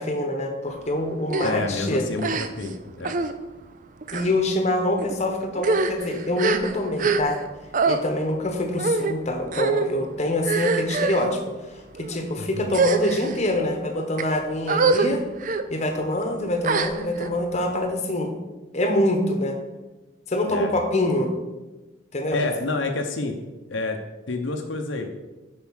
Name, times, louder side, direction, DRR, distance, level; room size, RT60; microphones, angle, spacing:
voice 1, 0.0-2.0 4.1-7.4 7.9-11.4 12.0-15.2 15.7-18.3 18.7-19.6 20.3-21.3 22.1-22.5, left 1 dB, 35° left, 4 dB, 1.0 m, -25 dB
sound 1, 1.3-1.5 2.2-2.7 3.0-3.3 4.0-4.3 5.0-5.2 5.5-7.5 7.7-8.0 8.8-9.1 9.5-9.9 10.4-11.3 11.9-12.2 12.7-13.4 14.0-14.2 14.7-15.1 15.4-15.6 16.6-17.3, right 4 dB, 40° right, 0.4 m, -24 dB
voice 2, 1.4-2.3 2.6-3.1 12.4-12.8 20.5-20.7 22.3-23.4 23.7-24.0 24.3-25.1, left 3 dB, 70° left, 4 dB, 0.8 m, -28 dB
7.0 x 5.4 x 6.4 m, 1.1 s
head